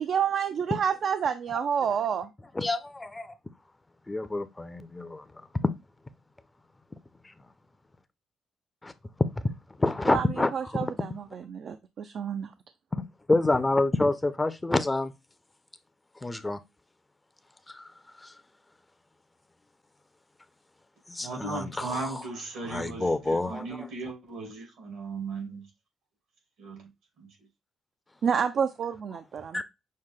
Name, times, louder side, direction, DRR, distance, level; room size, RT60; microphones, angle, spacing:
voice 1, 0.1-2.3 10.1-10.3 10.5-12.5 28.2-29.6, right 7 dB, 60° right, 0.4 m, -29 dB
voice 2, 2.5-3.3 4.1-5.2 5.6-5.7 8.8-8.9 9.4-9.5 9.8-10.9 12.9-13.0 13.3-15.1 16.2-16.6 17.7-17.9 18.2-18.3 21.1-22.2 22.6-23.9 29.5-29.6, left 2 dB, 15° left, 0.5 m, -28 dB
voice 3, 21.2-25.6 26.6-26.9 27.2-27.3, right 3 dB, 90° right, 2.4 m, -37 dB
6.3 x 2.1 x 3.6 m
cardioid pair, 90°, 0 cm